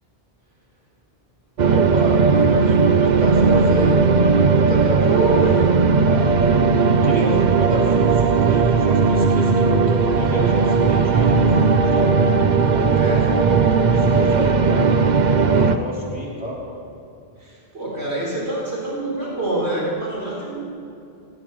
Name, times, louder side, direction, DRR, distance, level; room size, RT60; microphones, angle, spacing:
sound 1, 1.6-15.8, right 5 dB, 50° right, 0.7 m, -17 dB
voice 1, 1.7-4.0 4.7-5.6 6.0-6.3 7.0-12.1 12.7-13.6 13.8-14.9 15.5-16.6, equal, 10° right, -5 dB, 3.2 m, -30 dB
voice 2, 4.9-5.9 7.7-7.8 12.9-13.3 17.4-20.6, right 2 dB, 80° right, -6 dB, 4.6 m, -26 dB
18.5 x 16.5 x 3.2 m, 2.6 s
omnidirectional pair, 1.1 m